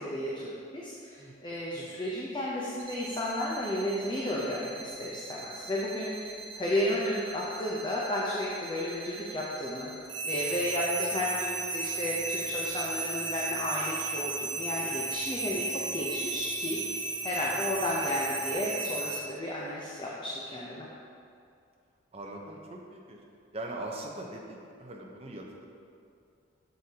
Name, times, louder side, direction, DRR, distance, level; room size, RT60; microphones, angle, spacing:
voice 1, 0.0-9.9 10.2-16.8 17.2-20.9, left 1 dB, 25° left, -5 dB, 0.7 m, -33 dB
sound 1, 2.8-19.2, right 3 dB, 65° right, 0.8 m, -35 dB
voice 2, 22.1-23.2 23.5-25.6, right 1 dB, 30° right, 0 dB, 0.8 m, -41 dB
7.9 x 6.5 x 2.9 m, 2.4 s
head